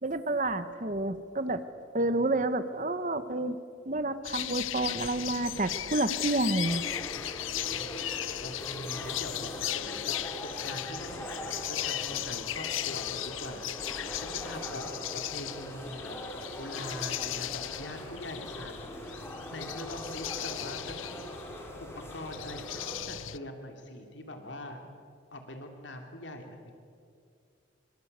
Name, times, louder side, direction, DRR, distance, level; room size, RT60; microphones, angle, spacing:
voice 1, 0.0-1.6 1.9-3.6 3.9-6.9, right 2 dB, 40° right, 11 dB, 1.1 m, -29 dB
sound 1, 4.2-23.4, left 13 dB, 85° left, 0.6 m, -37 dB
sound 2, 6.6-23.0, equal, 15° left, 3.7 m, -42 dB
voice 2, 7.1-7.9 8.4-16.2 16.6-20.9 21.8-24.8 25.3-26.7, left 1 dB, 65° left, 4 dB, 2.9 m, -43 dB
25.5 x 24.5 x 8.2 m, 2.4 s
head